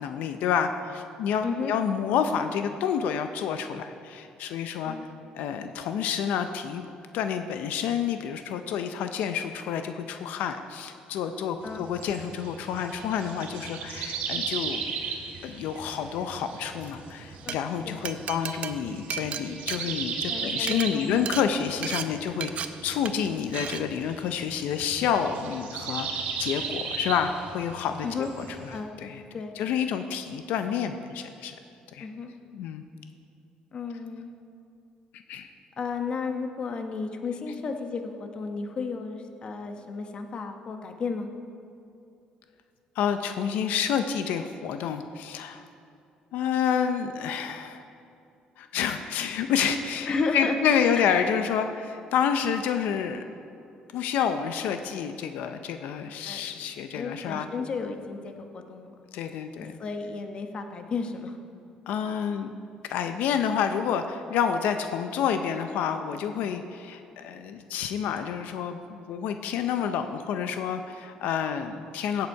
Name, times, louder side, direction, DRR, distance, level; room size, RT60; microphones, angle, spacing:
voice 1, 0.0-5.0 5.3-6.9 7.1-14.8 15.4-26.1 26.4-29.2 29.6-31.5 31.9-32.1 32.5-32.8 35.3-35.5 43.0-45.6 46.3-47.8 48.6-53.2 53.9-57.5 59.1-59.8 61.9-62.5 62.9-72.3, left 8 dB, 85° left, 8 dB, 0.6 m, -29 dB
sound 1, 11.6-28.8, right 5 dB, 80° right, 2.1 m, -37 dB
Glass, 17.3-17.6 18.0-20.3 20.6-20.9 21.3-21.4 21.8-22.0 22.4-22.7 23.0-23.3 23.5-23.8, right 8 dB, 50° right, 0.6 m, -33 dB
voice 2, 20.3-21.3 28.0-28.3 28.7-28.9 29.3-29.5 32.0-32.3 33.7-34.3 35.8-41.3 50.1-51.1 56.2-58.9 59.6-61.4 64.3-64.4, left 4 dB, 35° left, 5 dB, 1.0 m, -33 dB
16.5 x 8.1 x 4.6 m, 2.6 s
cardioid pair, 145°, 3 cm